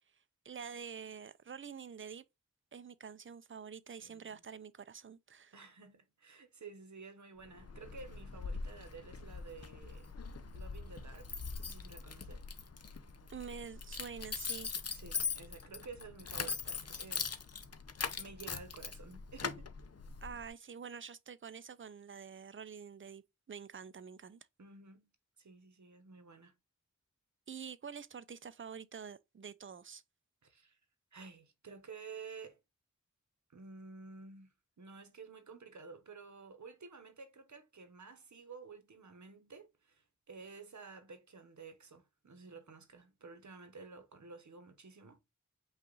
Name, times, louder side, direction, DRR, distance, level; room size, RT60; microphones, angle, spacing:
voice 1, 0.4-2.2 2.7-5.5 13.3-14.7 20.2-23.2 23.5-24.4 27.5-30.0, right 6 dB, 40° right, 0.5 m, -47 dB
voice 2, 4.0-4.4 5.5-10.1 10.5-11.3 11.6-12.4 14.9-17.3 18.2-19.7 24.6-25.1 25.4-26.5 30.4-30.8 31.1-32.6 33.5-45.2, right 4 dB, 70° right, 1.0 m, -52 dB
Keys jangling, 7.4-20.5, left 5 dB, 55° left, 0.6 m, -42 dB
5.5 x 2.5 x 3.9 m
wide cardioid pair, 60°, 30 cm